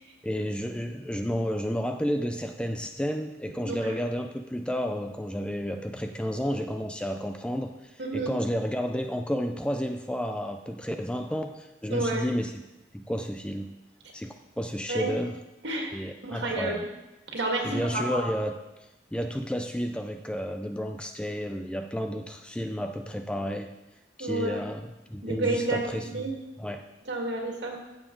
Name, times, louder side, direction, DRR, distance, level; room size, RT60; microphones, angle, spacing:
voice 1, 0.2-12.5 12.9-13.8 14.1-15.4 15.9-16.8 17.6-23.7 24.2-26.3 26.6-26.9, equal, 5° left, 6 dB, 0.4 m, -31 dB
voice 2, 8.0-8.3 11.9-12.3 14.9-15.1 15.6-15.9 16.2-16.8 17.3-18.2 24.2-24.7 25.2-26.3 27.1-27.8, right 2 dB, 65° right, 0 dB, 1.9 m, -30 dB
15.5 x 7.1 x 3.8 m, 0.98 s
head